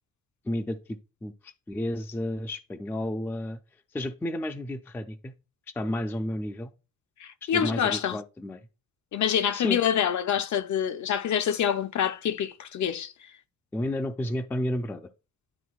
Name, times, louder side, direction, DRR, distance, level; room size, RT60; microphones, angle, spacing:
voice 1, 0.5-3.6 3.9-5.3 5.8-6.7 7.4-8.6 9.5-9.8 13.7-15.1, left 1 dB, 5° left, 0.3 m, -32 dB
voice 2, 7.2-8.2 9.1-13.3, left 9 dB, 55° left, 0.6 m, -26 dB
11.0 x 3.8 x 2.3 m
cardioid pair, 140°, 34 cm